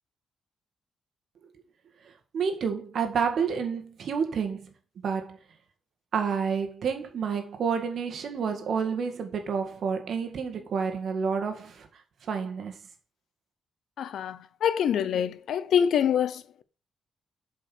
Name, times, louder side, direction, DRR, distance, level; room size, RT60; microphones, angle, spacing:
voice 1, 2.0-4.7 5.0-5.4 6.1-11.9 12.2-12.8, right 6 dB, 55° right, 1.9 m, -29 dB
voice 2, 14.0-16.6, left 8 dB, 70° left, 0.7 m, -26 dB
7.6 x 5.4 x 6.1 m
wide cardioid pair, 165°, 0 cm